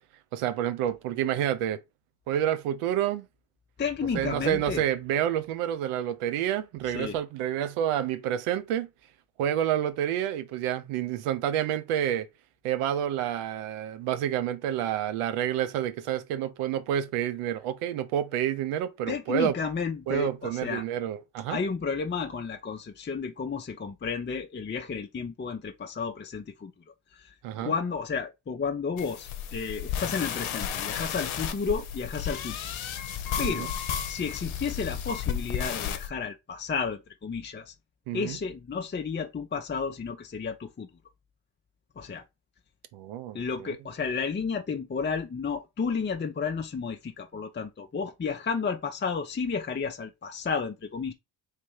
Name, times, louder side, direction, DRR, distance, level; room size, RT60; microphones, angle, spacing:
voice 1, 0.3-1.8 2.3-3.3 4.1-8.9 9.4-12.3 12.6-19.5 20.1-21.6 27.4-27.7 33.4-33.7 38.1-38.4 42.9-43.7, right 10 dB, 90° right, 0.6 m, -29 dB
voice 2, 3.8-4.8 6.8-7.2 19.1-20.8 21.5-26.7 27.1-27.3 27.6-32.6 33.4-33.7 34.0-37.7 38.1-40.9 42.0-42.2 43.3-51.1, left 5 dB, 25° left, 0.6 m, -32 dB
sound 1, 29.0-36.1, left 9 dB, 70° left, 0.8 m, -33 dB
3.3 x 2.8 x 4.6 m
supercardioid pair, 45°, 49 cm